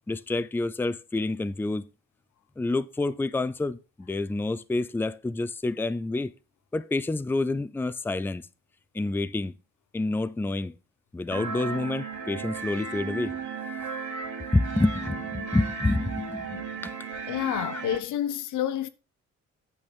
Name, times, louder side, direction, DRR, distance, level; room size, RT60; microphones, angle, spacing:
voice 1, 0.1-1.9 2.6-6.3 6.7-8.5 8.9-9.5 9.9-10.7 11.1-13.4 14.5-17.0 17.6-17.8, left 2 dB, 5° left, 0.5 m, -28 dB
sound 1, 11.3-18.0, right 5 dB, 80° right, 2.9 m, -35 dB
voice 2, 17.3-18.9, left 11 dB, 80° left, 0.9 m, -29 dB
8.9 x 6.2 x 5.4 m
cardioid pair, 90°, 30 cm